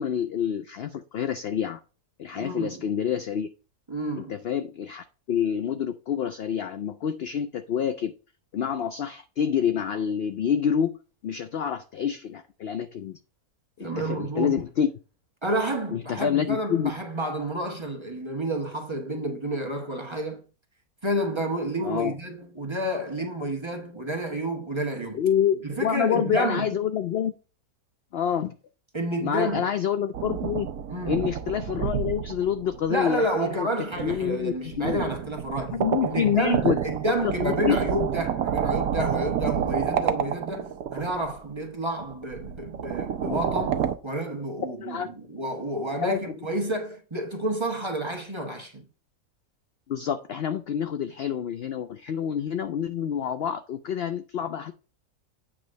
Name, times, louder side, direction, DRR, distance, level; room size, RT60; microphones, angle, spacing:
voice 1, 0.0-1.8 2.2-3.5 4.3-8.1 8.5-11.0 11.2-13.2 13.8-14.9 15.9-16.9 21.8-22.1 25.1-27.3 28.1-28.5 29.2-30.7 31.1-33.7 34.0-35.0 35.7-36.8 37.2-37.8 43.3-43.4 44.8-45.1 46.0-46.4 49.9-54.7, left 8 dB, 70° left, 0.6 m, -27 dB
voice 2, 2.3-2.8 3.9-4.3 13.8-14.6 15.4-20.4 21.0-25.2 25.6-26.8 28.9-29.7 30.9-31.3 32.9-35.7 36.0-48.9, right 1 dB, 20° right, 1.3 m, -30 dB
sound 1, 30.1-33.2 33.9-41.4 42.0-43.9, right 8 dB, 75° right, 1.1 m, -29 dB
8.8 x 3.1 x 6.4 m
omnidirectional pair, 1.6 m